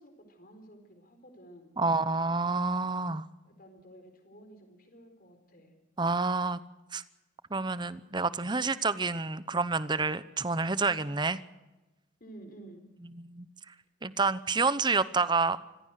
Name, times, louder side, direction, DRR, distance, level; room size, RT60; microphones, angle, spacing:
voice 1, 0.0-1.7 3.4-5.7 12.2-12.9, right 1 dB, 45° left, 7 dB, 4.3 m, -52 dB
voice 2, 1.8-3.3 6.0-6.6 6.9-7.0 7.5-11.4 13.2-13.5 14.0-15.6, right 4 dB, 25° right, 15 dB, 0.8 m, -28 dB
25.5 x 16.0 x 6.5 m, 1.1 s
head